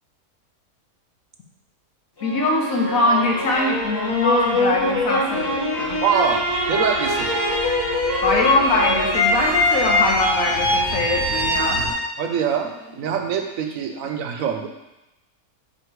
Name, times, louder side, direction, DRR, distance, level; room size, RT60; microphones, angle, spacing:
voice 1, 2.2-6.0 8.2-11.8, left 2 dB, 65° left, -1 dB, 1.4 m, -22 dB
sound 1, 2.2-13.2, left 1 dB, 25° left, 0.6 m, -23 dB
sound 2, 3.2-11.9, right 3 dB, 80° left, 2.7 m, -38 dB
voice 2, 6.0-7.4 12.2-14.7, right 7 dB, 70° right, 5 dB, 1.0 m, -24 dB
Trumpet, 6.1-11.2, right 7 dB, 90° right, 1.2 m, -33 dB
7.6 x 2.9 x 4.6 m, 0.94 s
omnidirectional pair, 1.6 m